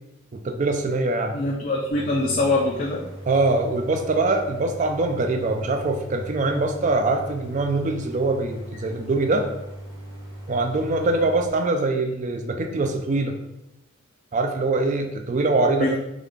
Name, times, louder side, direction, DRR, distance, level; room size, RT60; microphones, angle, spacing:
voice 1, 0.3-1.4 3.3-9.5 10.5-13.4 14.3-16.0, right 2 dB, 35° right, 5 dB, 0.3 m, -23 dB
voice 2, 1.3-3.1 15.8-16.0, left 2 dB, 40° left, -2 dB, 0.4 m, -23 dB
Idling, 1.9-11.5, right 1 dB, 70° right, 1.1 m, -39 dB
3.6 x 2.4 x 3.3 m, 0.88 s
head